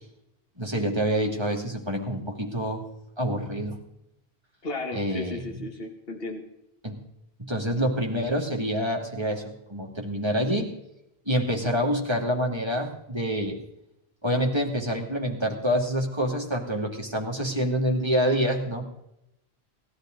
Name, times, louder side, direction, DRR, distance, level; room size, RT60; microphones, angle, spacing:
voice 1, 0.6-2.8 3.2-3.8 4.9-5.5 6.8-7.0 7.5-9.4 9.7-10.7 11.3-13.6 14.2-18.8, equal, 25° right, 0 dB, 2.5 m, -27 dB
voice 2, 4.6-6.5, left 2 dB, 65° left, 3 dB, 1.9 m, -35 dB
19.5 x 13.5 x 3.9 m, 0.83 s
omnidirectional pair, 1.1 m